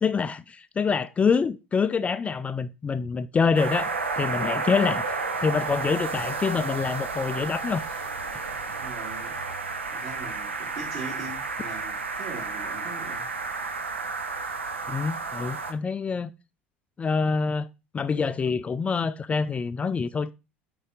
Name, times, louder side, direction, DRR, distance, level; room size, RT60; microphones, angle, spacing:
voice 1, 0.0-5.1 5.4-7.8 14.9-16.3 17.0-17.7 17.9-20.3, left 5 dB, 20° left, 0.4 m, -26 dB
sound 1, 3.5-15.7, right 4 dB, 80° right, 0.8 m, -31 dB
voice 2, 8.8-9.4 9.9-13.3, right 3 dB, 50° right, 3.0 m, -40 dB
9.2 x 4.0 x 3.8 m
figure-of-eight pair, 70°, 6 cm